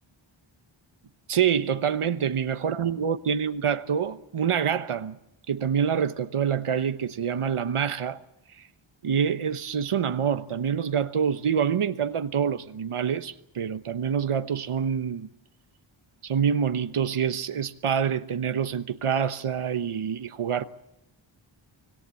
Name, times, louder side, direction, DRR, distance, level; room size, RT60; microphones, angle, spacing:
voice 1, 1.3-5.2 5.5-8.2 9.0-15.3 16.2-20.6, right 7 dB, 80° right, 1.1 m, -26 dB
25.5 x 18.0 x 8.4 m
wide cardioid pair, 85°, 50 cm